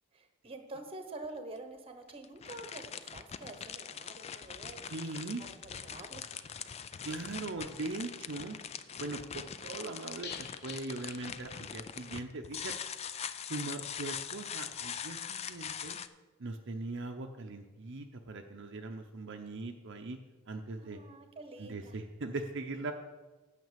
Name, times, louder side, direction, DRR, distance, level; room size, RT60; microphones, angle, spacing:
voice 1, 0.1-4.9 5.4-6.2 20.8-22.0, right 2 dB, 25° right, 7 dB, 1.0 m, -47 dB
sound 1, 1.2-1.3 2.1-16.1, left 8 dB, 30° left, 0.3 m, -42 dB
voice 2, 4.9-5.4 7.0-8.6 9.0-12.7 13.5-16.0 16.4-20.2 20.5-21.0 21.6-22.9, right 2 dB, 55° right, 3 dB, 0.7 m, -40 dB
sound 2, 10.2-12.0 12.3-12.4 12.7-12.8, left 7 dB, 50° left, 0.7 m, -49 dB
9.3 x 5.8 x 7.4 m, 1.2 s
head